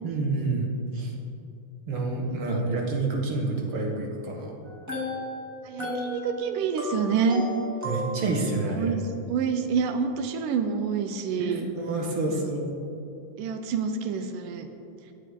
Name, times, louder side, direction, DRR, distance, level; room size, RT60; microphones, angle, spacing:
voice 1, 0.0-0.7 0.9-1.1 1.9-4.5 7.8-8.9 11.4-12.7, right 3 dB, 50° right, 0 dB, 1.9 m, -28 dB
sound 1, 4.7-8.6, equal, 5° right, 1.6 m, -34 dB
voice 2, 5.7-7.4 8.7-9.0 9.3-11.7 12.3-12.5 13.4-14.7, right 6 dB, 90° right, 7 dB, 2.4 m, -27 dB
22.5 x 7.7 x 3.6 m, 2.7 s
omnidirectional pair, 3.6 m